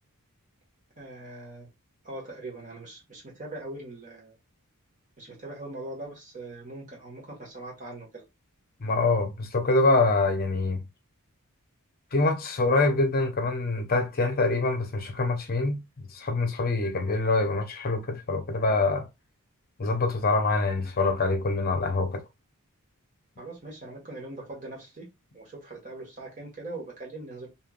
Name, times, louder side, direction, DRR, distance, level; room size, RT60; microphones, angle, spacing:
voice 1, 1.0-1.7 2.0-4.3 5.2-8.2 23.4-25.1 25.3-27.5, right 2 dB, 35° right, 1.4 m, -41 dB
voice 2, 8.8-10.8 12.1-15.8 16.1-19.0 19.8-22.2, left 3 dB, 40° left, 0.7 m, -25 dB
3.2 x 2.8 x 2.4 m
head